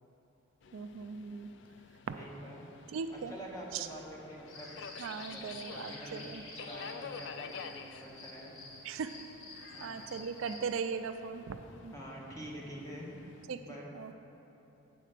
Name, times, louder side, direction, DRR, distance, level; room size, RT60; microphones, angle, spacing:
Subway metro underground, 0.6-13.4, left 6 dB, 60° left, 0.3 m, -50 dB
voice 1, 0.7-1.5 2.1-2.2 2.9-3.3 3.7-3.9 5.0-6.4 8.8-9.1 9.6-11.9 13.5-13.6 13.9-14.2, right 5 dB, 80° right, 9 dB, 0.4 m, -39 dB
voice 2, 2.1-2.7 3.1-4.7 5.1-5.4 5.7-6.3 6.6-8.5 9.7-10.1 11.9-13.1 13.6-13.9, right 1 dB, 15° left, -4 dB, 1.1 m, -46 dB
sound 1, 4.5-10.6, left 2 dB, 85° left, 1.3 m, -49 dB
8.4 x 4.4 x 6.6 m, 3.0 s
head